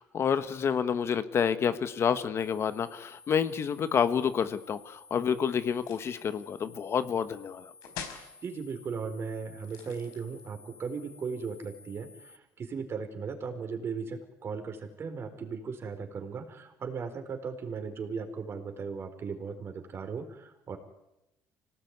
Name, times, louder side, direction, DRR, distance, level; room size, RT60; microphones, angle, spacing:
voice 1, 0.0-7.7, left 7 dB, 45° left, 12 dB, 1.3 m, -29 dB
sound 1, 2.4-12.4, left 4 dB, 10° left, 4.8 m, -55 dB
sound 2, 5.7-6.2 7.8-8.3 9.6-10.5, left 8 dB, 85° left, 4.7 m, -43 dB
voice 2, 8.4-20.8, right 5 dB, 40° right, 7 dB, 4.4 m, -37 dB
25.5 x 18.5 x 9.6 m, 0.92 s
cardioid pair, 115°, 6 cm